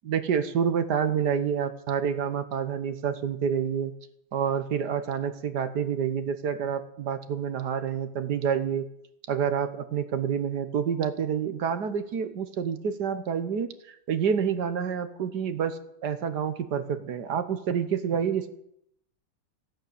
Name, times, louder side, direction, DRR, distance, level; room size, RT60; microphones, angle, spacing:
voice 1, 0.0-3.9 4.3-8.9 9.3-18.5, right 7 dB, 60° right, 11 dB, 1.5 m, -28 dB
14.5 x 10.5 x 8.5 m, 0.75 s
omnidirectional pair, 2.1 m